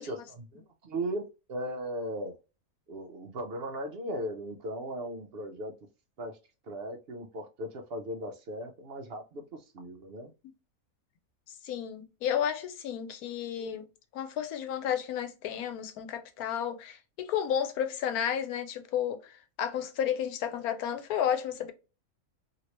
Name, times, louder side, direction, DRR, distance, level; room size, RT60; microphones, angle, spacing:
voice 1, 0.0-2.4 2.9-5.7 6.2-6.4 6.6-10.3, right 1 dB, 60° right, 0.7 m, -37 dB
voice 2, 11.6-13.9 14.1-19.3 19.6-21.7, left 9 dB, 85° left, 1.1 m, -32 dB
2.9 x 2.7 x 3.0 m
omnidirectional pair, 1.5 m